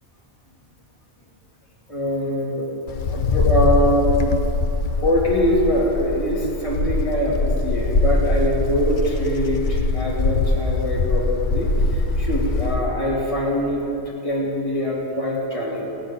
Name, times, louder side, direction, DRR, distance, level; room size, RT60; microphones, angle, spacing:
voice 1, 1.9-2.7 3.1-4.2 5.0-13.9 14.2-15.9, equal, 30° left, -6 dB, 2.8 m, -23 dB
Wind, 2.9-12.9, left 3 dB, 50° left, 0.8 m, -22 dB
16.5 x 8.6 x 9.8 m, 2.8 s
omnidirectional pair, 1.2 m